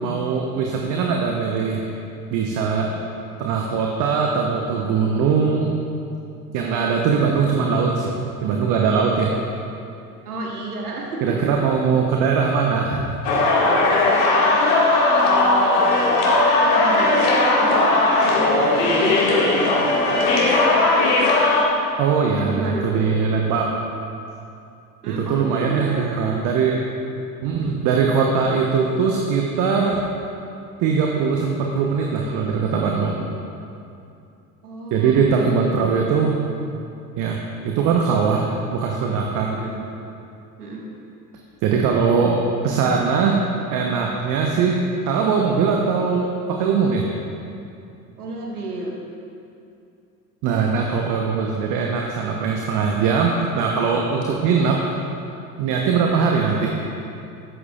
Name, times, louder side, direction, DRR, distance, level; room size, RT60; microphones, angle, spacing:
voice 1, 0.0-1.8 2.3-2.9 3.4-5.7 6.5-8.1 8.4-9.4 11.2-13.0 22.0-23.7 25.2-26.8 27.4-30.0 30.8-33.2 34.9-36.4 37.2-37.4 37.6-39.5 41.6-43.4 43.7-44.8 45.1-47.0 50.4-54.8 55.6-56.7, right 5 dB, 40° right, 0 dB, 1.1 m, -21 dB
voice 2, 10.3-11.4 14.4-14.6 15.0-20.4 22.4-23.1 25.0-26.5 34.6-36.1 39.5-39.7 40.6-40.8 48.2-49.0, right 2 dB, 75° right, -1 dB, 1.8 m, -31 dB
sound 1, 13.2-21.6, left 2 dB, 55° left, 2.2 m, -17 dB
13.5 x 11.0 x 2.5 m, 2.6 s
figure-of-eight pair, 70°, 46 cm